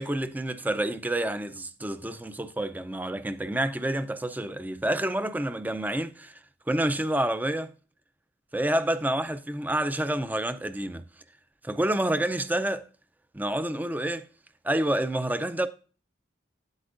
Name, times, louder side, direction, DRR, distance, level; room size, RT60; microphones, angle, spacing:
voice 1, 0.0-6.4 6.7-7.7 8.5-11.0 11.6-12.9 13.3-14.3 14.6-15.7, right 1 dB, 10° right, 0.4 m, -28 dB
9.3 x 8.0 x 2.5 m
head